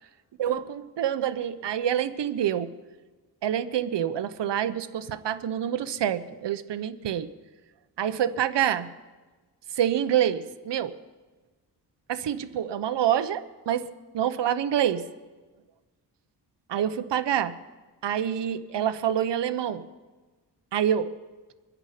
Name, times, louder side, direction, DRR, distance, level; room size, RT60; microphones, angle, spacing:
voice 1, 0.4-2.7 3.4-7.3 8.0-8.9 9.8-10.9 12.1-13.9 14.1-15.0 16.7-17.5 18.0-19.8 20.7-21.1, right 10 dB, 75° right, 11 dB, 0.9 m, -27 dB
25.0 x 10.0 x 5.0 m, 1.3 s
cardioid pair, 95°, 43 cm